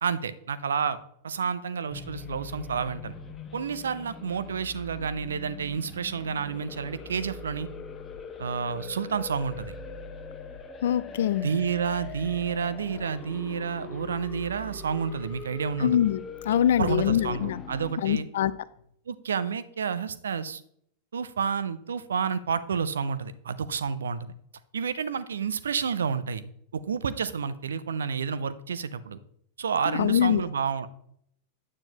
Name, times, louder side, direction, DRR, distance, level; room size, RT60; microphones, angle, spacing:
voice 1, 0.0-1.0 1.2-3.1 3.5-7.7 8.4-9.7 11.4-16.0 16.5-18.3 19.1-20.6 21.1-24.3 24.7-26.4 26.7-29.2 29.6-30.9, right 6 dB, 70° right, 14 dB, 0.6 m, -30 dB
sound 1, 1.9-17.9, left 4 dB, 20° left, 1.1 m, -41 dB
voice 2, 10.8-11.5 15.8-17.6 18.0-18.5 29.9-30.4, left 10 dB, 60° left, 16 dB, 0.5 m, -24 dB
9.7 x 8.8 x 2.9 m, 0.68 s
figure-of-eight pair, 90°, 0 cm